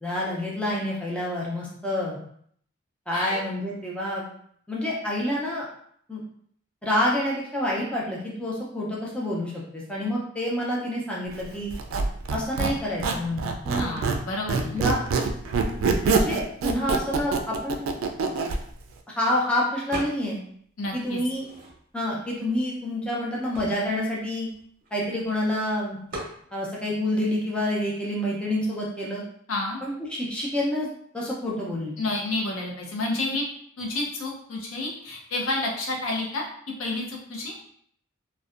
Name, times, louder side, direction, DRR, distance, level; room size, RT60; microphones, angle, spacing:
voice 1, 0.0-2.2 3.1-4.3 4.7-5.7 6.1-6.2 6.8-11.7 12.3-13.9 14.7-15.0 16.0-17.8 19.1-20.4 20.9-21.5 21.9-24.5 24.9-26.0 26.5-29.2 29.8-30.9 31.1-31.9, left 1 dB, 5° left, -5 dB, 0.4 m, -28 dB
Squeak, 11.7-14.2 14.5-18.6, right 4 dB, 80° right, 0.3 m, -25 dB
voice 2, 13.8-14.8 20.8-21.2 29.5-29.8 32.0-33.4 33.8-36.4 36.8-37.5, left 2 dB, 85° left, -1 dB, 0.6 m, -30 dB
sound 1, 19.9-20.5 20.8-22.1 22.7-22.8 23.0-25.3 26.1-26.4, right 1 dB, 45° right, 0.7 m, -39 dB
2.6 x 2.1 x 2.4 m, 0.64 s
head